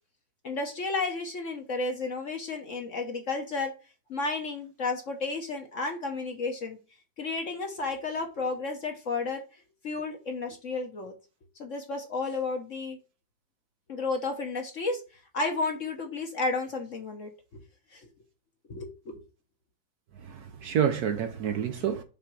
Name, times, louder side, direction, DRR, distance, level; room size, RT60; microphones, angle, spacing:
voice 1, 0.4-3.7 4.1-6.8 7.2-9.4 9.8-11.1 11.6-13.0 13.9-17.6 17.9-18.1 18.7-19.2, left 3 dB, 50° left, 1.1 m, -32 dB
voice 2, 20.2-22.0, right 8 dB, 65° right, 1.0 m, -28 dB
5.8 x 3.7 x 6.0 m
omnidirectional pair, 2.0 m